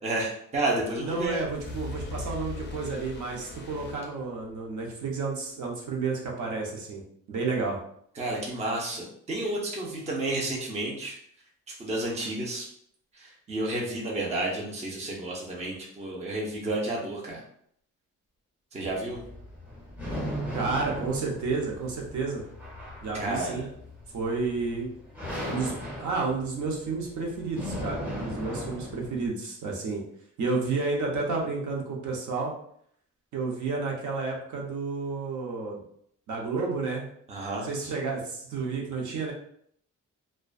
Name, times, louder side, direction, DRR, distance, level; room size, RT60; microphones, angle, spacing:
voice 1, 0.0-1.4 8.2-11.2 11.7-12.7 13.1-17.4 18.7-19.2 23.2-23.7 37.3-37.7, right 2 dB, 20° right, -3 dB, 0.5 m, -31 dB
voice 2, 1.0-7.0 7.3-7.8 20.5-22.4 23.0-23.7 24.1-24.9 25.5-30.0 30.4-32.5 33.3-35.8 36.3-37.1 37.6-39.3, right 4 dB, 65° right, -1 dB, 0.7 m, -31 dB
sound 1, 1.1-4.7, left 3 dB, 35° left, 0.4 m, -40 dB
sound 2, 18.9-29.3, equal, 5° right, 0.9 m, -37 dB
2.4 x 2.2 x 2.4 m, 0.66 s
cardioid pair, 145°, 32 cm